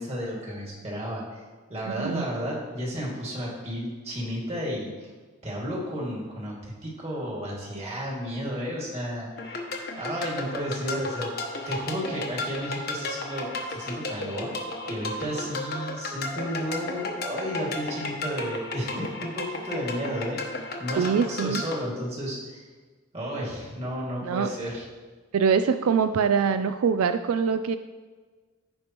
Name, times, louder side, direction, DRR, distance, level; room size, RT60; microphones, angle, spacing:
voice 1, 0.0-1.4 1.7-5.1 5.4-9.6 9.9-11.3 11.6-14.5 14.9-22.6 23.1-24.9, equal, 30° right, -4 dB, 2.2 m, -33 dB
sound 1, 9.4-21.8, left 2 dB, 45° left, 1.0 m, -34 dB
voice 2, 21.0-21.6 24.2-24.5 25.3-27.8, right 6 dB, 85° right, 10 dB, 0.4 m, -23 dB
15.0 x 5.2 x 3.0 m, 1.4 s
head